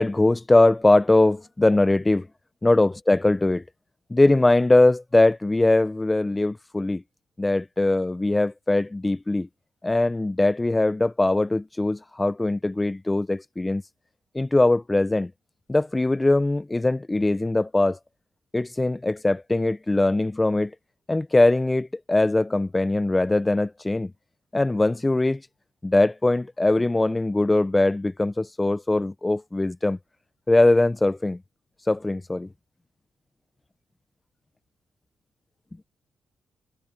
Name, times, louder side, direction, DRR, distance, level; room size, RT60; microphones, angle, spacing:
voice 1, 0.0-2.2 2.6-3.6 4.1-7.0 7.4-9.5 9.8-13.8 14.3-15.3 15.7-18.0 18.5-20.7 21.1-24.1 24.5-25.4 25.8-30.0 30.5-31.4 31.9-32.5, left 2 dB, 20° left, 1.4 m, -21 dB
supercardioid pair, 50°, 0 cm